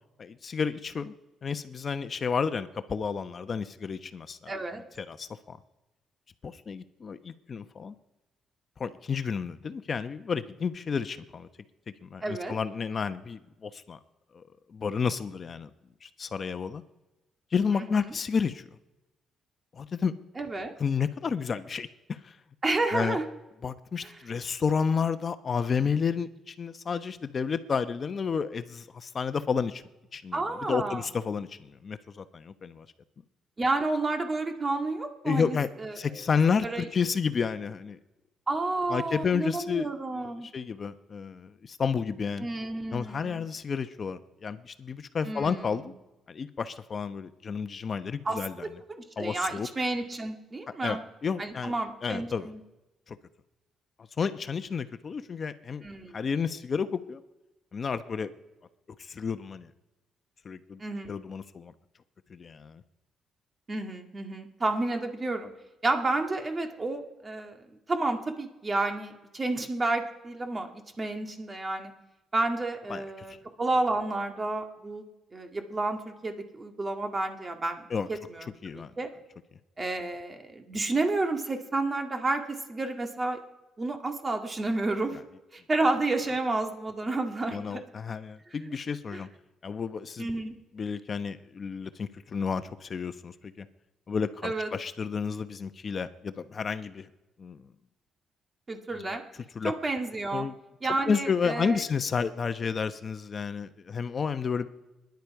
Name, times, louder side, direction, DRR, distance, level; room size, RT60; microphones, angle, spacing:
voice 1, 0.2-1.1 1.4-5.6 6.4-7.9 8.8-11.5 12.0-14.0 14.3-14.4 14.7-15.7 16.0-16.8 17.5-18.6 19.7-20.1 20.8-22.3 22.9-23.2 23.6-29.8 30.1-30.4 30.7-32.9 35.2-35.7 36.0-38.0 38.9-42.5 42.9-45.9 46.3-48.7 49.2-49.7 50.8-51.7 52.0-52.5 53.1-53.2 54.2-55.8 56.1-57.2 57.7-58.3 59.0-59.7 60.4-60.8 61.1-61.7 62.3-62.8 72.9-73.0 77.9-78.1 78.6-78.9 87.5-89.3 89.6-90.3 90.7-93.7 94.1-97.1 97.4-97.7 98.9-99.2 99.5-99.7 100.3-100.5 101.1-104.7, left 6 dB, 45° left, 11 dB, 0.9 m, -31 dB
voice 2, 4.5-4.8 12.2-12.5 17.8-17.9 20.4-20.7 22.6-23.3 24.0-24.2 30.3-31.1 33.6-36.2 36.6-36.9 38.5-40.5 42.4-43.4 45.2-45.9 48.3-51.0 51.4-52.6 55.8-56.3 60.8-61.1 63.7-65.5 65.8-70.7 71.0-71.9 72.3-75.1 75.3-78.5 78.7-79.1 79.8-83.4 83.8-85.2 85.5-87.8 88.5-88.7 89.1-89.2 90.2-90.5 94.4-94.7 98.7-99.2 99.6-100.5 100.8-101.8, right 2 dB, 30° right, 4 dB, 1.9 m, -31 dB
26.0 x 10.5 x 4.8 m, 1.0 s
cardioid pair, 90°, 0 cm